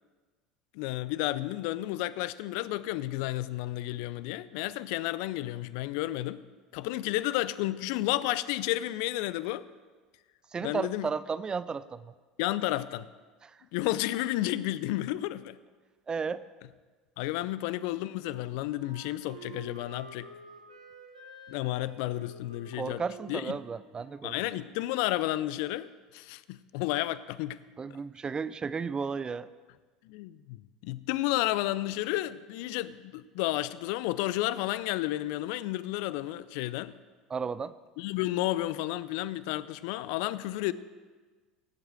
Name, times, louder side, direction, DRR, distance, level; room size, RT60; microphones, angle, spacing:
voice 1, 0.7-6.5 6.7-9.7 10.6-11.1 12.4-13.1 13.7-15.6 17.2-20.3 21.5-23.0 23.3-23.6 24.2-27.6 30.0-36.9 38.0-40.7, left 16 dB, 65° left, 0.4 m, -32 dB
voice 2, 10.5-12.1 13.4-13.5 16.1-16.4 22.8-24.3 27.8-29.5 37.3-37.7, right 5 dB, 25° right, 0.5 m, -33 dB
Wind instrument woodwind instrument, 17.8-25.3, right 2 dB, 90° right, 1.4 m, -50 dB
17.0 x 7.9 x 4.8 m
hypercardioid pair, 75°, 3 cm